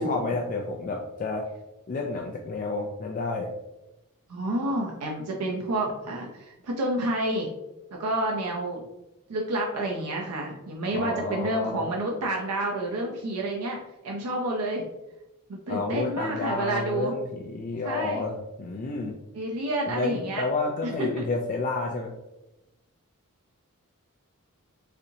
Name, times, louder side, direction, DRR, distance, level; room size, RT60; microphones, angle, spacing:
voice 1, 0.0-1.5 1.9-3.5 10.9-11.9 15.7-19.1 19.9-22.1, left 3 dB, 35° left, 1 dB, 0.3 m, -30 dB
voice 2, 4.3-7.5 8.0-8.8 9.3-14.8 15.5-17.1 17.8-18.2 19.3-20.4 20.8-21.2, right 1 dB, 85° right, 0 dB, 0.5 m, -29 dB
4.2 x 2.6 x 2.7 m, 0.95 s
head